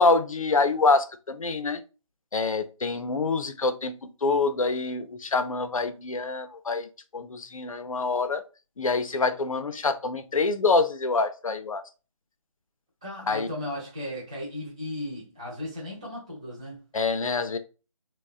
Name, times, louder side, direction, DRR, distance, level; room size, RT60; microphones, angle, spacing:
voice 1, 0.0-1.8 2.3-3.9 4.2-6.9 7.1-8.4 8.8-11.8 13.3-13.5 16.9-17.6, left 3 dB, 75° left, 0.4 m, -25 dB
voice 2, 13.0-16.8, left 1 dB, 10° right, 0.3 m, -36 dB
3.3 x 2.1 x 2.3 m
figure-of-eight pair, 155°, 18 cm